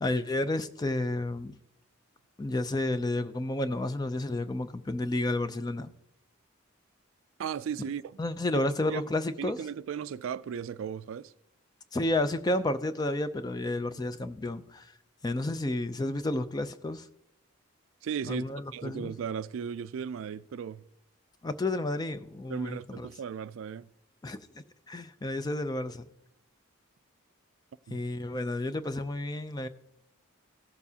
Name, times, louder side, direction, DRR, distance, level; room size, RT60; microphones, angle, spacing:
voice 1, 0.0-1.5 2.4-5.9 8.2-9.6 11.9-14.9 15.2-17.1 18.2-19.2 21.4-23.1 24.2-24.4 24.9-26.0 27.9-29.7, left 1 dB, 20° left, 0.4 m, -31 dB
voice 2, 7.4-8.2 8.5-8.6 8.9-9.0 9.4-11.3 18.0-18.5 18.7-20.8 22.5-23.9 27.9-28.0, right 7 dB, 70° right, 0.3 m, -36 dB
16.0 x 6.9 x 2.8 m
head